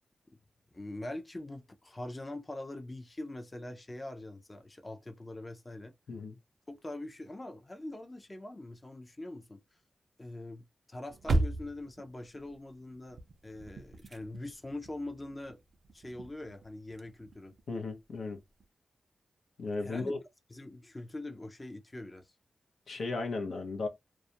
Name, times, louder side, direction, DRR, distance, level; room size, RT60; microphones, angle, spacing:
voice 1, 0.7-5.9 6.7-9.6 10.2-15.6 15.9-17.5 19.8-20.2 20.5-22.3, left 1 dB, 25° left, 0.5 m, -43 dB
sound 1, 11.1-17.9 18.2-18.3 18.6-18.7, right 2 dB, 60° right, 0.4 m, -36 dB
voice 2, 17.7-18.4 19.6-20.2 22.9-23.9, left 3 dB, 75° left, 0.6 m, -35 dB
2.3 x 2.1 x 2.7 m
cardioid pair, 75°, 0 cm